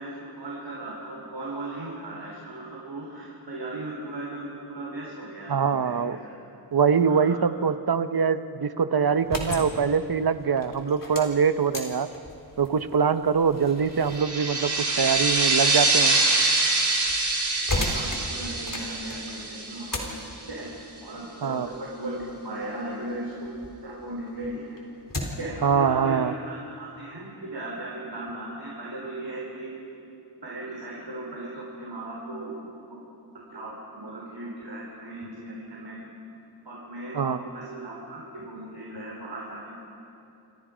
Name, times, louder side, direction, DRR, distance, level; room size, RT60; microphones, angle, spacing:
voice 1, 0.0-6.3 7.1-7.4 17.7-20.2 20.5-20.7 21.0-24.8 25.4-29.7 30.4-33.0 33.5-36.1 36.6-39.7, right 1 dB, 75° right, -4 dB, 4.0 m, -37 dB
voice 2, 5.5-6.2 6.7-12.1 12.6-16.2 21.4-21.7 25.6-26.3 37.1-37.4, right 6 dB, 60° right, 11 dB, 0.9 m, -23 dB
sound 1, 9.1-23.8 24.2-25.6, left 1 dB, 50° left, 3.6 m, -37 dB
sound 2, 14.1-20.4, right 3 dB, 45° right, 4.1 m, -25 dB
27.0 x 26.5 x 5.1 m, 2.8 s
wide cardioid pair, 75°, 42 cm